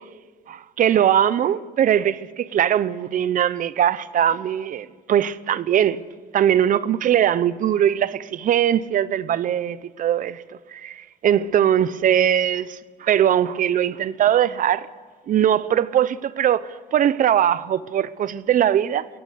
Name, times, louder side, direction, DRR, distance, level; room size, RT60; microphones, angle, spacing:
voice 1, 0.5-6.0 6.3-10.4 10.7-14.9 15.3-19.1, right 10 dB, 50° right, 0.9 m, -21 dB
24.0 x 16.0 x 8.2 m
cardioid pair, 110°, 17 cm